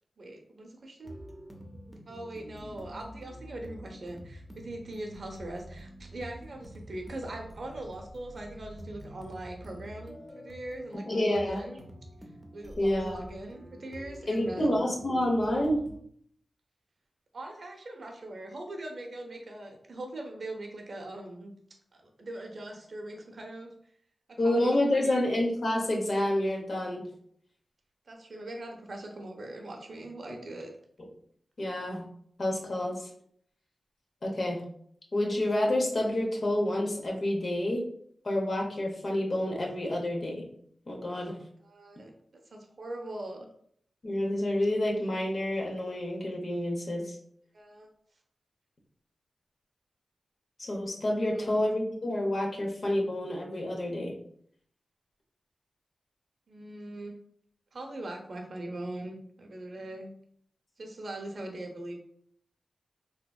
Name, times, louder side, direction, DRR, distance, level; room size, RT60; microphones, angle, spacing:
voice 1, 0.2-1.1 2.1-11.8 12.5-14.9 17.3-21.5 22.0-23.7 24.4-25.2 28.1-30.7 41.2-42.1 42.5-43.5 47.5-47.9 51.3-51.6 56.5-57.2 57.7-60.1 60.8-61.9, right 1 dB, 60° right, 2 dB, 0.6 m, -41 dB
sound 1, 1.0-16.0, equal, ahead, 0.5 m, -47 dB
voice 2, 11.0-11.6 12.8-13.2 14.3-15.8 24.4-27.1 31.6-32.1 32.4-33.1 34.2-34.6 35.1-37.8 38.2-40.5 40.9-41.3 44.0-47.2 50.6-54.1, left 1 dB, 50° left, -1 dB, 0.7 m, -28 dB
3.4 x 2.8 x 2.3 m, 0.65 s
wide cardioid pair, 125°, 0 cm